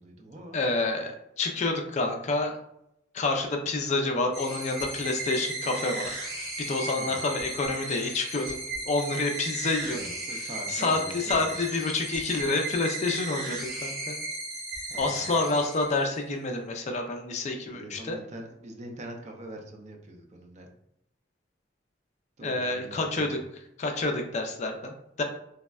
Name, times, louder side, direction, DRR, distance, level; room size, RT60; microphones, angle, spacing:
voice 1, 0.0-0.6 6.9-7.3 9.9-11.8 14.9-15.4 17.6-20.7 22.4-23.4, right 1 dB, 40° right, 2 dB, 0.4 m, -43 dB
voice 2, 0.5-2.5 3.1-10.0 10.7-14.2 14.9-18.2 22.4-23.4 23.8-25.2, left 3 dB, 40° left, 3 dB, 0.4 m, -28 dB
sound 1, 4.3-16.2, right 2 dB, 55° right, 0.9 m, -36 dB
3.4 x 2.1 x 2.3 m, 0.76 s
head